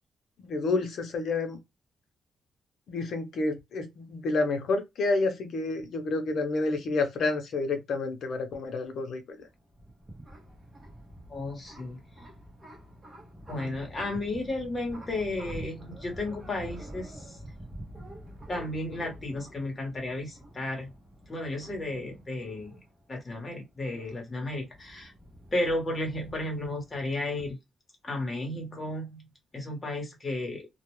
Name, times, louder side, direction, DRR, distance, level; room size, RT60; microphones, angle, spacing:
voice 1, 0.4-1.6 2.9-9.4, left 3 dB, 60° left, 0.7 m, -29 dB
sound 1, 9.4-27.5, right 1 dB, 20° right, 0.9 m, -47 dB
voice 2, 11.3-12.0 13.5-17.2 18.5-20.9 21.3-22.8 23.1-25.1 25.5-27.6 28.0-29.2 29.5-30.7, left 2 dB, 20° left, 1.1 m, -33 dB
2.4 x 2.2 x 3.0 m
cardioid pair, 155°, 0 cm